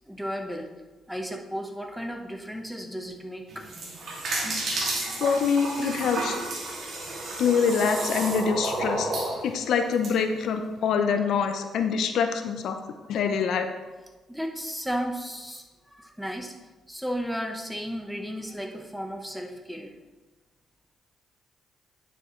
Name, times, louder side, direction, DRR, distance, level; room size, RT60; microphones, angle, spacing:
voice 1, 0.1-0.7 1.1-3.7 14.3-16.6 16.9-19.9, equal, ahead, 3 dB, 1.0 m, -34 dB
sound 1, 3.5-10.1, right 2 dB, 55° right, 2.3 m, -31 dB
voice 2, 5.1-6.4 7.4-9.1 9.4-12.8 13.1-13.7, left 6 dB, 75° left, 6 dB, 0.7 m, -25 dB
9.8 x 6.7 x 3.1 m, 1.2 s
cardioid pair, 90°, 0 cm